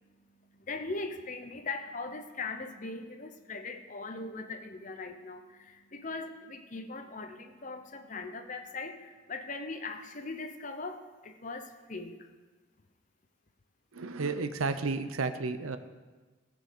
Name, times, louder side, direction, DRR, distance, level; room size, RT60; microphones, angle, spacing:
voice 1, 0.5-12.3, left 3 dB, 35° left, 7 dB, 0.8 m, -40 dB
voice 2, 13.9-15.8, right 3 dB, 85° right, 10 dB, 0.7 m, -32 dB
15.0 x 5.2 x 6.8 m, 1.3 s
head